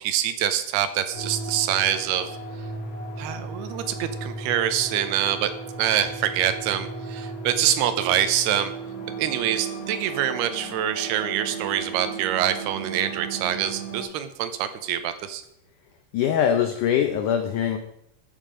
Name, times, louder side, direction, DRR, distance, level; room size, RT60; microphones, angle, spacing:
voice 1, 0.0-2.3 3.2-5.5 5.8-8.7 9.2-15.4, right 10 dB, 80° right, 10 dB, 2.7 m, -25 dB
sound 1, 1.1-14.0, right 4 dB, 70° left, 4.8 m, -35 dB
voice 2, 16.1-17.8, left 9 dB, 85° left, 7 dB, 1.8 m, -22 dB
13.0 x 7.2 x 5.0 m, 0.75 s
omnidirectional pair, 4.7 m